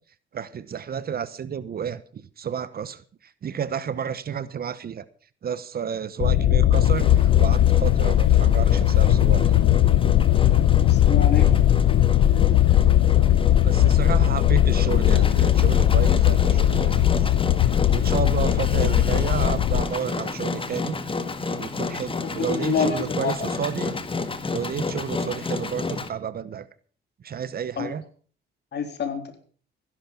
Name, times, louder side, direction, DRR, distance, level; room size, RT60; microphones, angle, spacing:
voice 1, 0.3-5.1 5.4-9.7 13.6-17.3 17.9-21.0 21.6-24.0 24.5-26.7 27.2-28.0, right 8 dB, 50° right, 16 dB, 1.0 m, -31 dB
sound 1, 6.2-19.8, left 12 dB, 80° left, 0.9 m, -18 dB
Engine, 6.7-26.1, left 3 dB, 25° left, 1.7 m, -31 dB
voice 2, 10.8-11.5 22.2-23.0 23.2-23.5 27.8-27.9 28.7-29.3, left 6 dB, 60° left, 7 dB, 3.6 m, -27 dB
16.0 x 11.0 x 6.1 m, 0.42 s
cardioid pair, 90°, 20 cm